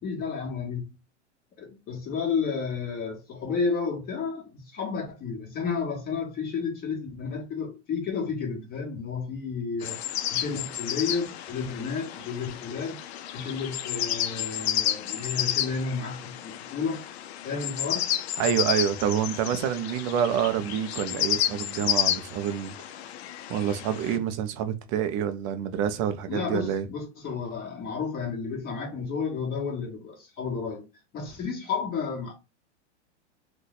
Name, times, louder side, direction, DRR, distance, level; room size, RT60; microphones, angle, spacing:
voice 1, 0.0-0.9 1.6-10.0 10.3-13.0 13.3-17.0 17.4-18.1 26.3-30.9 31.1-32.3, left 5 dB, 25° left, 1.2 m, -32 dB
sound 1, 9.8-24.2, left 11 dB, 65° left, 0.5 m, -31 dB
voice 2, 18.4-22.7 23.5-26.8, right 9 dB, 30° right, 0.4 m, -27 dB
2.6 x 2.2 x 3.9 m
hypercardioid pair, 130°, 35 cm